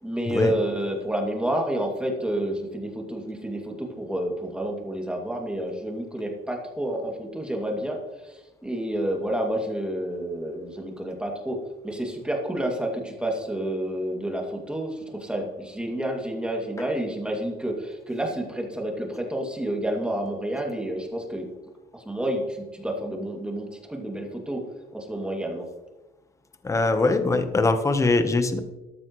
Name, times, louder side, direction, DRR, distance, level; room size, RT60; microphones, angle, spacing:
voice 1, 0.0-21.5 21.9-24.7 24.9-25.7, right 1 dB, 5° right, 1 dB, 2.4 m, -29 dB
voice 2, 26.6-28.6, left 3 dB, 20° left, 8 dB, 1.0 m, -22 dB
13.5 x 12.0 x 3.1 m, 1.1 s
cardioid pair, 110°, 17 cm